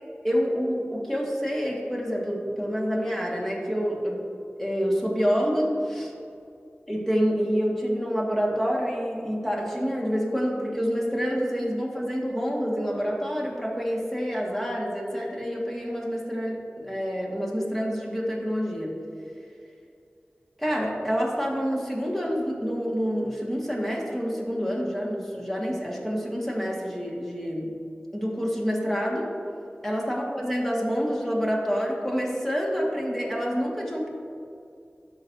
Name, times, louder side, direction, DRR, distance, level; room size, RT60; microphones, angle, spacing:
voice 1, 0.2-4.2 4.6-6.1 6.9-18.9 20.6-27.7 28.1-29.3 29.8-34.1, equal, 5° left, -3 dB, 1.7 m, -27 dB
13.0 x 6.1 x 2.7 m, 2.5 s
wide cardioid pair, 65°, 4 cm